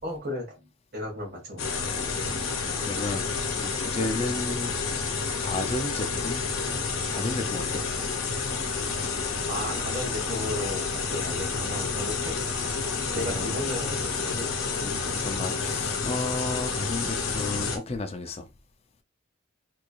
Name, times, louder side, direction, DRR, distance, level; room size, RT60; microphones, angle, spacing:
voice 1, 0.0-1.6 9.5-12.4 13.1-14.5, left 1 dB, 50° right, 1.9 m, -34 dB
sound 1, 1.6-17.8, left 4 dB, 75° left, 0.9 m, -29 dB
voice 2, 2.3-4.8 5.4-6.5 7.1-7.9 12.8-13.5 14.8-18.5, left 2 dB, 30° left, 0.5 m, -33 dB
3.6 x 3.2 x 2.5 m
head